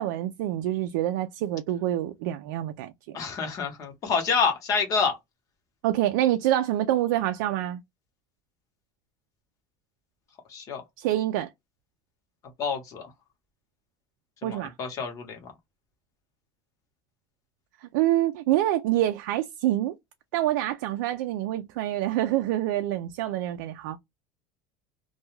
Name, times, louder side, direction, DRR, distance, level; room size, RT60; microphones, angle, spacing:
voice 1, 0.0-3.2 5.8-7.8 11.0-11.5 14.4-14.7 17.8-19.9 20.3-24.0, right 13 dB, 80° right, 0.4 m, -26 dB
voice 2, 3.1-5.2 10.5-10.8 12.6-13.1 14.4-15.4, left 5 dB, 35° left, 0.9 m, -27 dB
2.2 x 2.2 x 3.0 m
cardioid pair, 155°, 10 cm